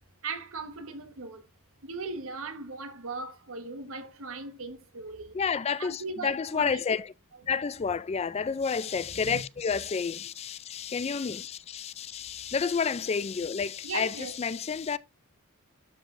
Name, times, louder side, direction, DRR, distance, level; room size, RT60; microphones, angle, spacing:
voice 1, 0.2-1.5 1.8-5.4 5.8-6.8 9.1-9.4 13.8-14.3, right 3 dB, 70° right, 1.3 m, -38 dB
voice 2, 5.3-7.1 7.5-15.0, left 6 dB, 30° left, 0.3 m, -30 dB
12.5 x 5.1 x 2.6 m
head